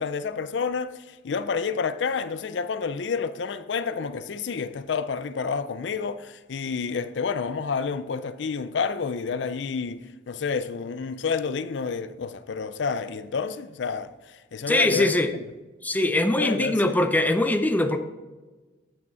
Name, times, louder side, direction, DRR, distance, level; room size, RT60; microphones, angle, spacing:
voice 1, 0.0-15.1 16.4-16.9, left 5 dB, 75° left, 0.4 m, -29 dB
voice 2, 14.7-15.3 15.8-18.0, left 1 dB, 10° left, 0.5 m, -22 dB
8.6 x 6.0 x 4.4 m
head